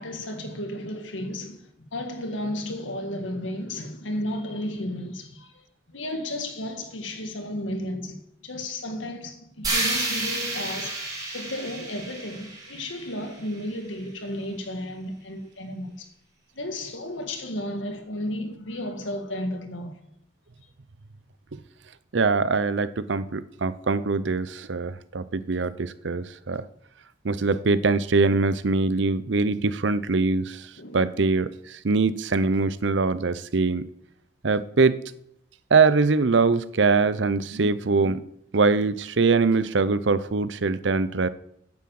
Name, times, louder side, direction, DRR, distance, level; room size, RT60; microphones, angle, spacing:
voice 1, 0.0-16.1 16.5-20.0 30.8-31.1, left 1 dB, 85° left, 1.9 m, -33 dB
sound 1, 9.6-13.7, right 2 dB, 20° right, 4.0 m, -30 dB
voice 2, 22.1-26.6 27.2-30.7 30.9-33.9 34.4-35.0 35.7-38.3 38.5-41.3, right 4 dB, 70° right, 0.7 m, -23 dB
9.7 x 8.6 x 7.7 m
head